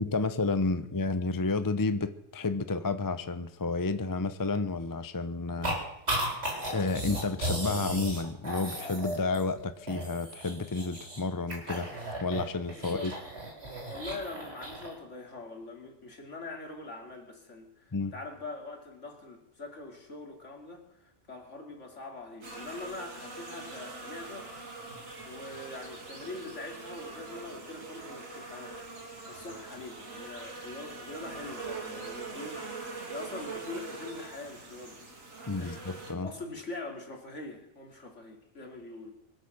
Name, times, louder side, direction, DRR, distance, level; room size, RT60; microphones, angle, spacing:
voice 1, 0.0-5.8 6.7-11.9 12.2-13.1 17.9-18.1 35.5-36.3, left 3 dB, 25° left, 12 dB, 0.5 m, -31 dB
sound 1, 5.6-5.7 6.1-9.6 9.9-11.2 11.5-14.9, right 1 dB, 50° right, 4.4 m, -35 dB
sound 2, 9.0-12.0, equal, 15° right, 2.8 m, -45 dB
voice 2, 12.8-13.1 13.9-24.7 25.2-28.8 29.2-32.7 33.1-35.0 35.6-35.8 36.2-39.1, left 2 dB, 60° left, 2 dB, 3.2 m, -43 dB
sound 3, 22.4-36.1, right 4 dB, 70° right, 3.0 m, -43 dB
24.0 x 8.3 x 6.6 m, 0.84 s
omnidirectional pair, 1.4 m